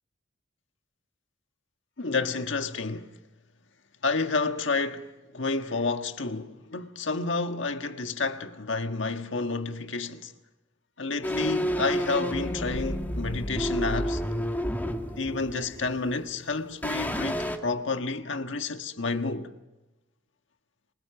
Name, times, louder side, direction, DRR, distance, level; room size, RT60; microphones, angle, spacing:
voice 1, 2.0-3.1 4.0-10.3 11.0-14.2 15.2-19.5, left 3 dB, 65° left, 1.5 m, -30 dB
sound 1, 11.2-16.4 16.8-17.6, equal, 10° left, 2.1 m, -30 dB
27.0 x 25.5 x 5.9 m
head